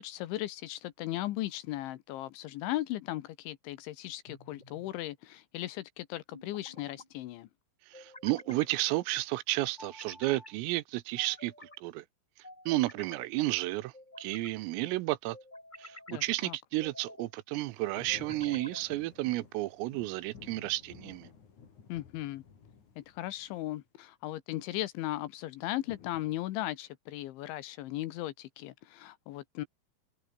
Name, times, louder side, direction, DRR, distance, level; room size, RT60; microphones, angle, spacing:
voice 1, 0.0-7.5 16.1-16.6 21.9-22.4 23.0-29.7, left 15 dB, 75° left, 3.2 m, -37 dB
sound 1, 4.3-4.9 6.3-7.1 7.9-8.7 9.8-10.5 11.2-11.8 12.4-13.3 13.9-14.6 15.3-16.2 16.8-17.3 18.1-18.9, left 1 dB, 10° left, 4.5 m, -50 dB
voice 2, 8.0-12.1 12.7-13.9 14.2-15.4 15.8-21.3, right 18 dB, 80° right, 3.5 m, -32 dB
sound 2, 17.7-23.7 25.8-26.4, left 6 dB, 40° left, 4.6 m, -53 dB
omnidirectional pair, 5.9 m